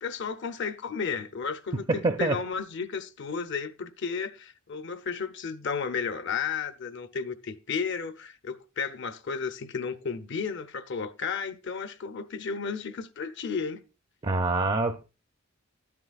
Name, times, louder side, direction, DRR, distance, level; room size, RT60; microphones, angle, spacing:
voice 1, 0.0-13.8, left 5 dB, 60° left, 0.7 m, -33 dB
voice 2, 1.9-2.4 14.2-15.0, right 3 dB, 25° right, 0.4 m, -25 dB
13.0 x 9.7 x 2.4 m
head